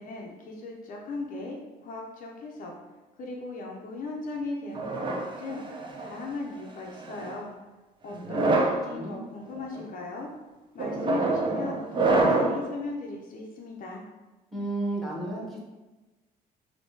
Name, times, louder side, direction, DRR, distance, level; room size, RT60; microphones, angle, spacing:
voice 1, 0.0-2.8 3.2-5.6 6.0-7.5 8.0-10.3 10.7-14.0, left 3 dB, 55° left, -1 dB, 0.5 m, -37 dB
sound 1, 4.8-6.2 7.0-7.3 8.2-8.8 9.5-9.8 10.8-12.7, right 3 dB, 30° right, 0.4 m, -26 dB
voice 2, 8.1-8.5 8.9-9.2 14.5-15.6, right 2 dB, ahead, -4 dB, 1.0 m, -33 dB
3.5 x 2.7 x 2.7 m, 1.1 s
cardioid pair, 110°, 17 cm